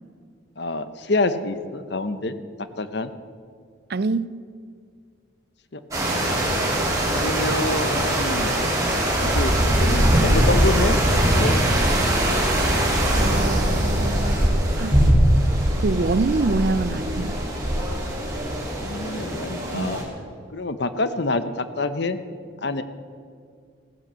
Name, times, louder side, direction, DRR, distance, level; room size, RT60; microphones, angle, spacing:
voice 1, 0.6-2.3 2.8-3.1 5.7-6.5 7.1-8.5 9.2-11.0 11.4-11.6 18.8-20.0 20.5-22.2 22.6-22.8, left 2 dB, 55° left, 12 dB, 0.8 m, -27 dB
voice 2, 3.9-4.4 13.2-14.4 14.8-15.0 15.8-17.3 19.7-19.9, right 3 dB, 50° right, 17 dB, 0.4 m, -25 dB
sound 1, 5.9-20.0, right 1 dB, 15° right, 3.2 m, -21 dB
15.5 x 10.5 x 7.4 m, 2.2 s
head